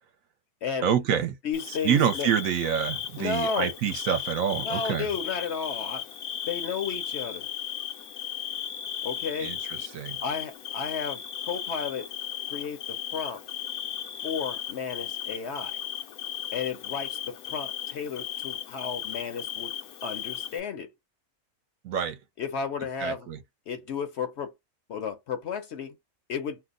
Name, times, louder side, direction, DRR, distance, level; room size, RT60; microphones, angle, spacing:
voice 1, 0.8-1.4 1.7-5.1 9.4-10.2 21.8-22.2 23.0-23.4, right 8 dB, 70° right, 1.0 m, -27 dB
voice 2, 1.4-2.3 3.2-3.7 4.6-6.1 6.5-7.5 9.0-9.5 10.2-12.1 12.5-13.4 14.2-15.8 16.5-19.7 20.0-20.9 22.4-23.3 23.7-24.5 24.9-26.0 26.3-26.6, left 6 dB, 60° left, 0.8 m, -33 dB
Bird / Cricket, 1.5-20.6, left 9 dB, 85° left, 1.1 m, -36 dB
2.7 x 2.1 x 3.7 m
omnidirectional pair, 1.5 m